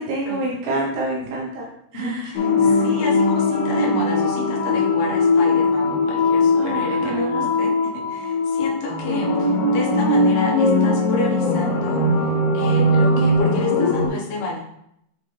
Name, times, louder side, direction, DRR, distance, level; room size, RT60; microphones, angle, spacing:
voice 1, 0.0-1.7 1.9-2.3 6.5-7.5, right 2 dB, 75° right, -3 dB, 3.1 m, -27 dB
voice 2, 1.9-14.6, left 2 dB, 70° left, -2 dB, 1.8 m, -31 dB
sound 1, 2.4-14.1, left 2 dB, 90° left, 3.4 m, -20 dB
7.5 x 4.0 x 3.3 m, 0.76 s
omnidirectional pair, 5.2 m